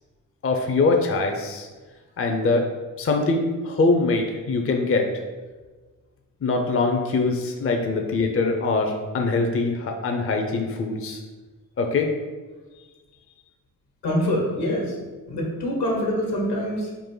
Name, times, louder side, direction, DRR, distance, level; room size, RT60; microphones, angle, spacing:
voice 1, 0.4-1.7 2.2-2.7 3.0-5.1 6.4-11.2 11.8-12.1, left 3 dB, 35° left, 3 dB, 0.6 m, -23 dB
voice 2, 14.0-14.9 15.3-16.9, equal, 75° left, -1 dB, 1.3 m, -25 dB
4.0 x 2.5 x 3.8 m, 1.3 s
supercardioid pair, 50°, 40 cm